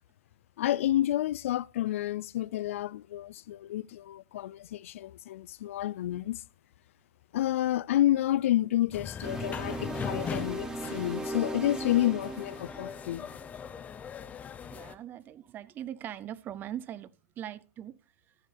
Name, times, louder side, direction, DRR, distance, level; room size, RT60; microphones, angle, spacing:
voice 1, 0.6-6.4 7.3-13.3, left 13 dB, 65° left, 0.4 m, -29 dB
sound 1, 8.9-14.9, left 7 dB, 20° left, 0.8 m, -40 dB
sound 2, 9.2-13.6, right 2 dB, 10° right, 1.0 m, -38 dB
voice 2, 14.7-17.1 17.4-17.9, right 11 dB, 25° right, 0.6 m, -40 dB
14.0 x 9.4 x 3.5 m
hypercardioid pair, 130°, 8 cm